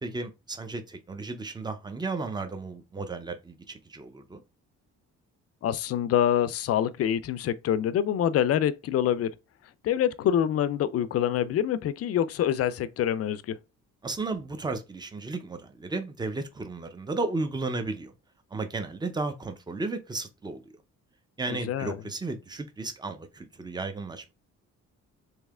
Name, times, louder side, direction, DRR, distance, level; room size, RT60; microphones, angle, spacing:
voice 1, 0.0-4.4 14.0-18.1 18.5-20.6 21.4-24.3, right 3 dB, 15° right, 0.7 m, -34 dB
voice 2, 5.6-9.3 9.8-13.6 21.5-22.0, left 10 dB, 50° left, 0.5 m, -26 dB
3.2 x 2.8 x 3.6 m
cardioid pair, 90°, 30 cm